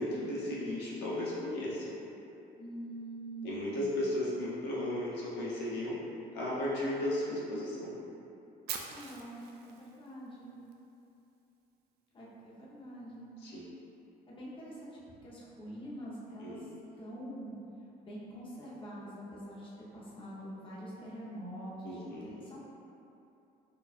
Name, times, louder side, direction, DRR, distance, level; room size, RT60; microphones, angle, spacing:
voice 1, 0.0-2.0 3.4-6.0 6.3-7.9 13.4-13.7 16.4-16.6 21.8-22.4, left 1 dB, 85° left, -7 dB, 0.8 m, -35 dB
voice 2, 2.6-3.7 8.9-10.5 12.1-13.3 14.3-16.7 17.0-17.6 18.0-22.6, right 1 dB, 30° left, -7 dB, 0.9 m, -45 dB
Fire, 8.7-10.7, right 7 dB, 70° right, 0.4 m, -43 dB
4.6 x 2.4 x 2.4 m, 2.8 s
cardioid pair, 110°, 17 cm